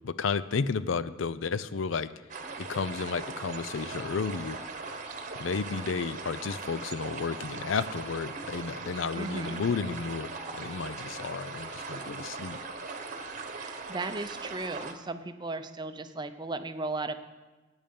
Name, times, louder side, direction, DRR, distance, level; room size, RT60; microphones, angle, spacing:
voice 1, 0.0-2.1 2.6-4.6 5.3-12.6, left 5 dB, 70° left, 15 dB, 0.5 m, -32 dB
sound 1, 2.3-14.9, right 4 dB, 40° right, 1.1 m, -39 dB
voice 2, 9.1-9.6 13.5-17.1, right 3 dB, 20° right, 9 dB, 0.6 m, -36 dB
15.5 x 8.9 x 5.4 m, 1.2 s
head